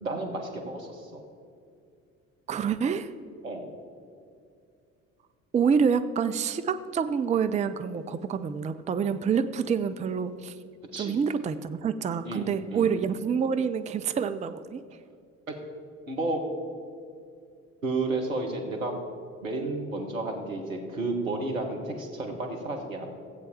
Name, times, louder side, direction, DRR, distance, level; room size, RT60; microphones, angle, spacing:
voice 1, 0.0-1.2 3.4-3.7 9.6-9.7 10.9-11.2 12.2-13.0 15.5-15.6 16.1-16.4 17.8-18.9 19.4-23.1, right 2 dB, 85° right, 2 dB, 1.3 m, -32 dB
voice 2, 2.5-3.1 5.5-10.6 11.0-14.8, right 6 dB, 20° right, 11 dB, 0.5 m, -27 dB
15.0 x 8.4 x 4.3 m, 2.4 s
figure-of-eight pair, 50°, 40 cm